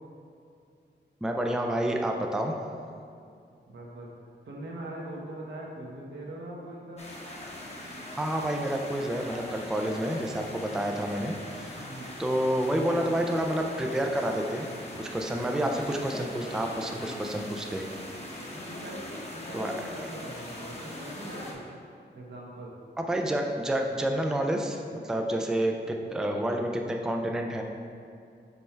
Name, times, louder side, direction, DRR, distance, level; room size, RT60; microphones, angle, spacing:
voice 1, 1.2-2.5 8.2-11.9 12.2-14.7 15.0-17.8 19.5-19.7 23.0-27.6, right 1 dB, 5° right, 2 dB, 0.4 m, -29 dB
voice 2, 3.7-4.1 4.5-7.1 11.8-12.3 18.5-21.7 22.1-22.7, right 1 dB, 80° right, -3 dB, 1.2 m, -41 dB
sound 1, 7.0-21.5, left 1 dB, 35° left, 1.0 m, -41 dB
5.4 x 4.3 x 4.6 m, 2.4 s
wide cardioid pair, 130°, 18 cm